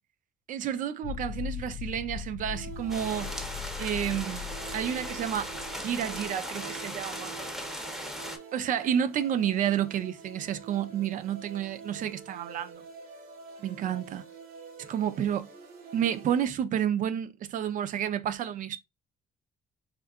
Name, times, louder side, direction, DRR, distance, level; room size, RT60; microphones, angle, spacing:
voice 1, 0.5-3.3 3.8-5.5 5.8-7.3 8.5-12.8 13.6-14.2 14.8-15.5 15.9-18.8, right 9 dB, 55° right, 0.5 m, -30 dB
sound 1, 1.0-6.3, left 9 dB, 75° left, 0.4 m, -40 dB
sound 2, 2.5-16.4, right 6 dB, 75° right, 0.9 m, -47 dB
sound 3, 2.9-8.4, equal, ahead, 0.6 m, -38 dB
3.6 x 2.7 x 2.3 m
cardioid pair, 120°, 16 cm